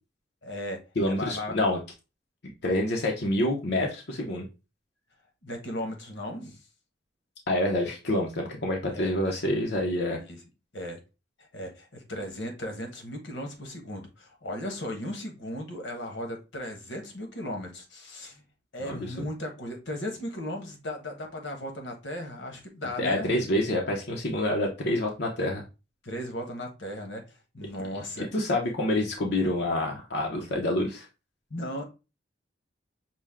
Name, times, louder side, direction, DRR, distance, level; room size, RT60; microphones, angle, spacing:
voice 1, 0.4-1.5 5.4-6.6 8.9-9.1 10.1-10.4 10.7-11.0 11.4-18.4 18.7-23.4 26.0-28.3 31.5-31.8, left 1 dB, 90° left, 1.2 m, -36 dB
voice 2, 1.0-1.8 2.4-4.4 7.5-10.2 18.8-19.1 23.0-25.6 28.2-31.1, left 1 dB, 65° left, 0.8 m, -27 dB
6.0 x 2.2 x 3.5 m
head